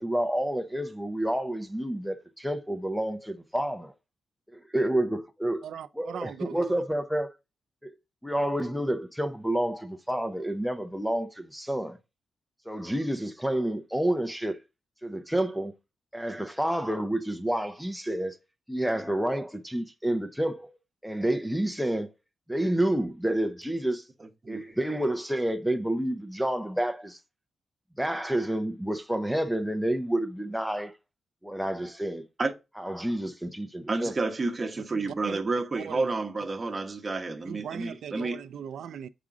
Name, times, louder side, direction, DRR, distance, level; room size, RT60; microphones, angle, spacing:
voice 1, 0.0-3.9 4.7-5.6 6.0-7.3 7.8-7.9 8.2-12.0 12.7-14.6 15.0-15.7 16.1-18.4 18.7-20.8 21.0-22.1 22.5-24.0 24.5-27.2 28.0-30.9 31.4-32.2 32.8-34.1, right 1 dB, ahead, 0.6 m, -29 dB
voice 2, 5.6-6.6 34.8-35.4 35.7-36.1 37.4-39.1, right 8 dB, 80° right, 0.4 m, -40 dB
voice 3, 24.2-24.6 32.4-32.5 33.9-38.4, right 3 dB, 25° right, 1.0 m, -30 dB
7.2 x 5.0 x 3.7 m
wide cardioid pair, 170°, 0 cm